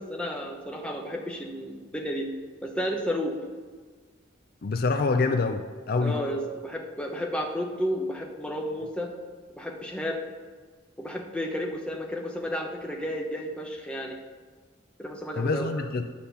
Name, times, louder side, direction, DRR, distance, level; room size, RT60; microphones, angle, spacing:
voice 1, 0.0-2.3 2.6-3.4 6.0-9.1 9.6-10.2 11.0-14.2 15.0-15.8, equal, 5° left, 0 dB, 0.9 m, -32 dB
voice 2, 4.6-6.1 15.3-16.1, left 3 dB, 50° left, 7 dB, 0.4 m, -26 dB
10.0 x 4.3 x 6.8 m, 1.5 s
head